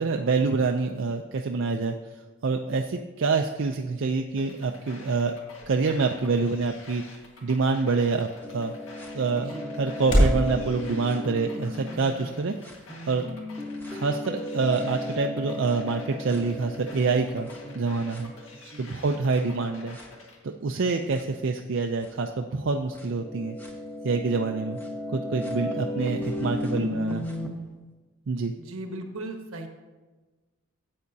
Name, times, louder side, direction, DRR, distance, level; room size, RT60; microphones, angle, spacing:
voice 1, 0.0-1.9 2.4-5.4 5.7-7.0 7.4-8.7 9.1-9.5 9.8-12.5 13.1-13.3 13.9-17.5 17.7-18.3 18.8-20.0 20.4-23.6 24.0-24.8 25.1-27.2 28.3-28.5, right 4 dB, 60° right, 3 dB, 0.4 m, -26 dB
sound 1, 4.2-10.5, equal, 40° left, 3.3 m, -31 dB
sound 2, 4.4-20.4, left 2 dB, 70° left, 1.7 m, -49 dB
sound 3, 8.4-12.3 12.6-18.8 19.3-19.4 19.9-20.0 21.1-21.2 22.0-22.1 22.9-27.5, left 1 dB, 10° left, 1.0 m, -35 dB
voice 2, 9.4-9.8 17.6-17.8 18.5-18.9 28.6-29.7, right 2 dB, 80° right, 4 dB, 1.2 m, -38 dB
13.0 x 8.5 x 2.7 m, 1.3 s
head